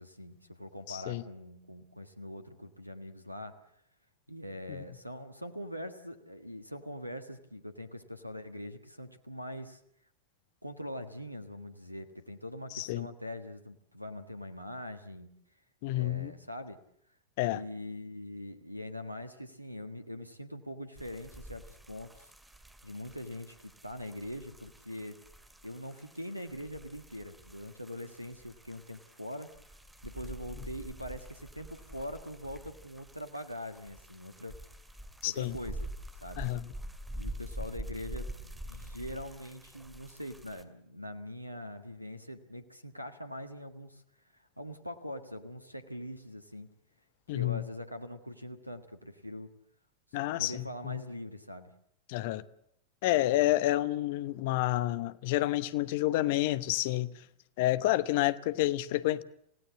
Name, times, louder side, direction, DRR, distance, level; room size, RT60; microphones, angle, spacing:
voice 1, 0.0-3.6 4.3-9.8 10.6-15.3 15.9-16.8 17.5-22.3 22.8-25.2 25.6-29.6 30.0-34.6 35.2-35.9 36.2-36.5 37.1-44.0 44.6-46.7 47.3-49.5 50.4-51.7, left 1 dB, 90° right, 1.5 m, -43 dB
voice 2, 0.9-1.2 12.7-13.1 15.8-16.3 17.4-17.6 35.2-35.6 36.4-36.6 47.3-47.6 50.1-51.0 52.1-52.4 53.0-57.1 57.6-59.2, left 16 dB, 50° left, 1.0 m, -29 dB
sound 1, 21.0-40.6, right 1 dB, 5° right, 2.3 m, -46 dB
28.0 x 17.0 x 7.6 m
figure-of-eight pair, 90°, 0 cm